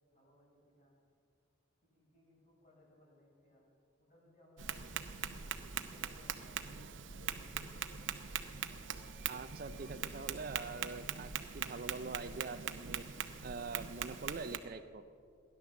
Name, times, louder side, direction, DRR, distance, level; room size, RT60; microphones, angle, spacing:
voice 1, 0.1-0.9 1.8-3.6 4.0-8.2, left 1 dB, 40° left, -4 dB, 4.8 m, -66 dB
Tap, 4.6-14.6, right 8 dB, 70° right, 0.8 m, -42 dB
sound 1, 6.2-11.7, right 1 dB, 5° right, 2.5 m, -68 dB
voice 2, 9.3-13.0 13.4-15.0, right 4 dB, 45° right, 9 dB, 0.5 m, -44 dB
16.0 x 11.0 x 7.2 m, 2.4 s
head